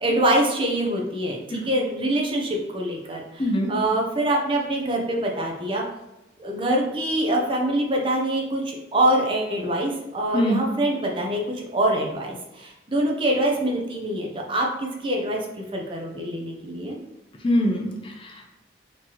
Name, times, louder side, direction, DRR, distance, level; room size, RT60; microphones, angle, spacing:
voice 1, 0.0-5.8 6.4-17.0, right 1 dB, 30° right, -1 dB, 0.6 m, -25 dB
voice 2, 3.4-3.7 10.3-10.6 17.4-18.5, equal, 30° left, 2 dB, 0.5 m, -23 dB
4.3 x 2.9 x 3.0 m, 0.96 s
head